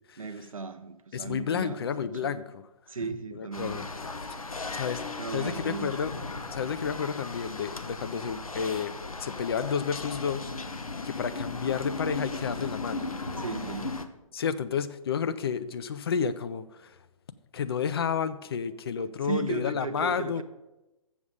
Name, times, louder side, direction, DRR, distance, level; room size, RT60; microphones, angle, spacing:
voice 1, 0.2-2.4 2.9-3.8 5.2-6.1 13.4-14.0 19.2-20.4, right 4 dB, 70° right, 7 dB, 0.6 m, -36 dB
voice 2, 1.1-2.6 3.3-3.8 4.7-5.0 5.3-6.1 6.5-8.9 9.2-10.5 11.0-13.1 14.3-17.0 17.5-20.4, left 7 dB, 45° left, 13 dB, 0.5 m, -31 dB
sound 1, 3.5-14.1, left 3 dB, 75° left, 0.7 m, -37 dB
7.1 x 6.9 x 5.1 m, 0.99 s
figure-of-eight pair, 130°, 18 cm